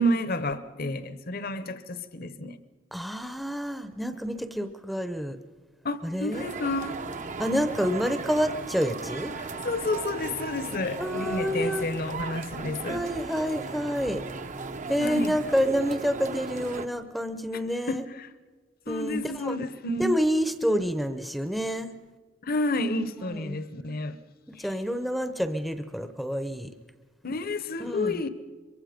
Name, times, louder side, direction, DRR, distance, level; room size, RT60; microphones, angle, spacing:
voice 1, 0.0-2.6 5.8-7.0 9.4-13.0 15.0-15.3 17.9-18.0 18.9-20.1 22.4-24.2 24.6-24.7 27.2-28.3, left 1 dB, 50° left, 1.0 m, -30 dB
voice 2, 2.9-5.4 6.0-6.5 7.4-9.3 11.0-11.9 12.9-14.2 14.9-18.0 18.9-19.6 20.0-21.9 23.3-23.6 24.5-26.7 27.8-28.2, equal, ahead, 0.7 m, -28 dB
sound 1, 6.3-16.9, right 4 dB, 40° right, 0.7 m, -36 dB
23.5 x 23.5 x 5.1 m
head